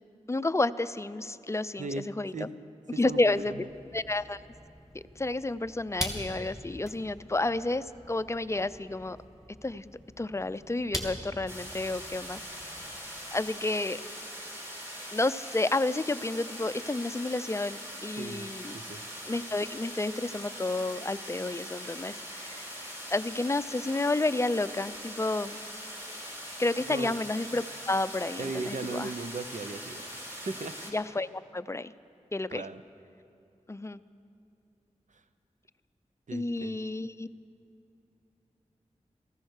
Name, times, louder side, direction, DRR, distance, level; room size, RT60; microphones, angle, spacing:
voice 1, 0.3-1.9 2.2-2.5 3.0-3.6 3.9-4.4 4.9-9.2 9.6-12.4 13.3-14.0 15.1-18.8 19.3-22.6 23.1-25.6 26.6-29.1 30.9-31.9 32.3-32.6 33.7-34.0 36.3-37.3, left 2 dB, 20° left, 14 dB, 0.5 m, -30 dB
voice 2, 2.9-3.7 18.2-19.0 26.9-27.2 28.4-30.7 32.5-32.8 36.3-36.8, right 3 dB, 70° right, 10 dB, 0.7 m, -38 dB
sound 1, 3.0-13.5, equal, 5° right, 2.6 m, -43 dB
sound 2, 11.5-30.9, equal, 20° right, 4.2 m, -42 dB
15.0 x 15.0 x 6.5 m, 2.6 s
wide cardioid pair, 50°, 13 cm